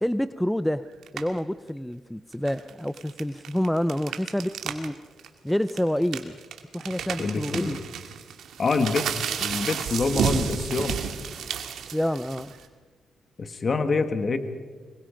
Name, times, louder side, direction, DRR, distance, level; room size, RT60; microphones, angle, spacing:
voice 1, 0.0-0.8 1.1-5.0 5.4-6.4 6.7-7.8 11.9-12.5, equal, 5° left, 13 dB, 0.6 m, -28 dB
sound 1, 1.0-1.4 2.3-4.9 5.2-5.3 5.7-12.6, right 7 dB, 80° right, 2.1 m, -31 dB
voice 2, 7.2-7.8 8.6-9.1 9.4-11.0 13.4-14.4, left 4 dB, 45° left, 8 dB, 1.7 m, -26 dB
25.0 x 22.5 x 5.1 m, 1.5 s
cardioid pair, 85°, 0 cm